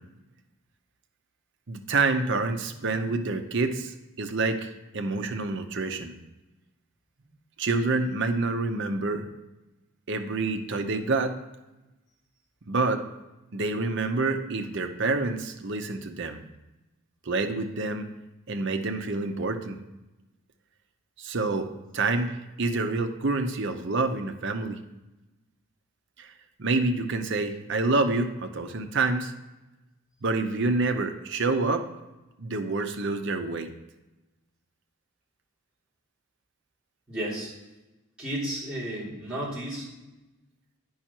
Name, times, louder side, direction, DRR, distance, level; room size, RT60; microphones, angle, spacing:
voice 1, 1.7-6.1 7.6-9.3 10.1-11.4 12.7-13.0 13.5-16.4 17.2-18.1 18.5-19.8 21.2-24.8 26.2-26.3 26.6-29.3 30.2-31.9 32.4-33.7, right 3 dB, 55° right, 6 dB, 0.7 m, -27 dB
voice 2, 37.1-37.5 38.2-39.9, right 1 dB, 5° right, -10 dB, 3.1 m, -33 dB
8.7 x 5.6 x 4.4 m, 1.0 s
head